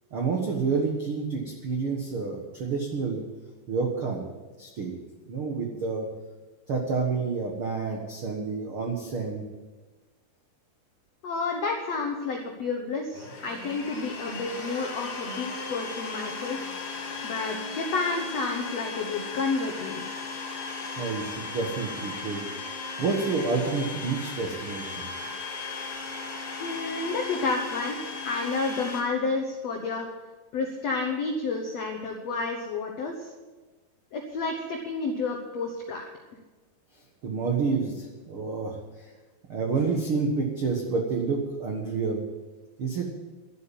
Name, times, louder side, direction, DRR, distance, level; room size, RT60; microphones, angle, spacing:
voice 1, 0.1-3.2 3.7-4.2 4.6-5.0 5.3-6.1 6.7-9.4 21.0-22.5 23.0-25.0 37.2-38.8 39.5-42.2 42.8-43.1, right 4 dB, 70° right, 0 dB, 1.2 m, -29 dB
voice 2, 11.2-16.6 17.2-20.0 26.6-28.0 28.2-30.1 30.5-33.3 34.1-36.0, left 4 dB, 75° left, 2 dB, 1.5 m, -30 dB
Domestic sounds home sounds, 13.1-29.0, left 4 dB, 55° left, 3.9 m, -36 dB
13.0 x 8.5 x 9.0 m, 1.3 s
omnidirectional pair, 4.9 m